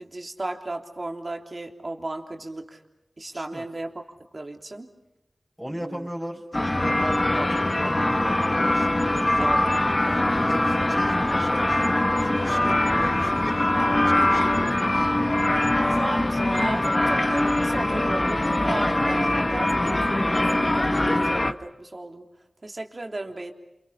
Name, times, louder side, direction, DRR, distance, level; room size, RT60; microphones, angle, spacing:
voice 1, 0.0-2.8 3.2-3.9 4.3-4.9 5.7-6.1 9.4-9.6 10.0-10.3 15.8-22.3 22.6-23.5, right 2 dB, 45° right, 3 dB, 3.3 m, -35 dB
voice 2, 3.3-3.7 5.6-9.5 10.0-13.7 14.0-14.8 15.1-15.3, equal, 5° right, -4 dB, 5.5 m, -37 dB
sound 1, 6.5-21.5, left 1 dB, 30° left, 1.5 m, -22 dB
30.0 x 28.0 x 5.8 m, 0.92 s
wide cardioid pair, 50°, 0 cm